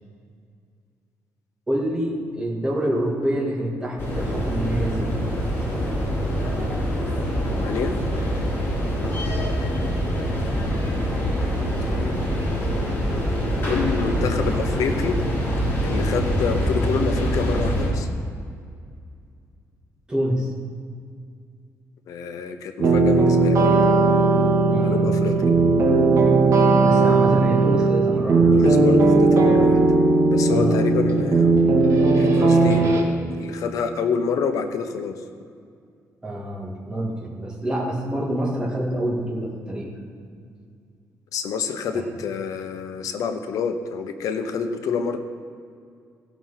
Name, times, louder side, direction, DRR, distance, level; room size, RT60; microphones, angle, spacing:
voice 1, 1.7-5.1 9.0-9.2 20.1-20.5 24.7-25.1 26.8-28.6 30.5-31.0 36.2-40.0 41.9-42.1, right 1 dB, 15° right, -3 dB, 2.0 m, -27 dB
sound 1, 4.0-17.9, equal, 30° left, 2.8 m, -24 dB
voice 2, 7.4-8.0 11.9-12.2 13.7-15.2 15.8-18.1 22.1-23.8 24.8-25.4 28.5-29.8 30.2-31.5 32.2-32.9 33.4-35.1 41.3-45.2, left 6 dB, 70° left, 7 dB, 0.9 m, -27 dB
sound 2, 22.8-33.0, right 3 dB, 55° right, 1.6 m, -17 dB
16.0 x 6.1 x 5.7 m, 2.3 s
cardioid pair, 175°, 6 cm